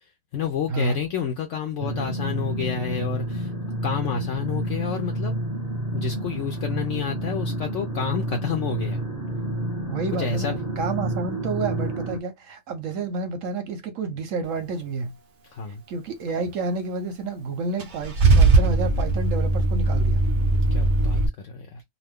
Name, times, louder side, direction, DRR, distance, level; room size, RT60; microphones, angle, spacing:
voice 1, 0.3-3.5 3.8-5.4 5.9-9.0 10.2-10.6 15.5-15.8 20.7-21.8, left 7 dB, 70° left, 0.7 m, -30 dB
sound 1, 1.8-12.2, right 1 dB, 15° right, 0.8 m, -29 dB
voice 2, 9.9-15.2 15.9-20.2, right 4 dB, 65° right, 0.8 m, -30 dB
Car / Engine starting / Idling, 17.8-21.3, right 3 dB, 85° right, 0.4 m, -19 dB
2.5 x 2.5 x 3.5 m
omnidirectional pair, 1.8 m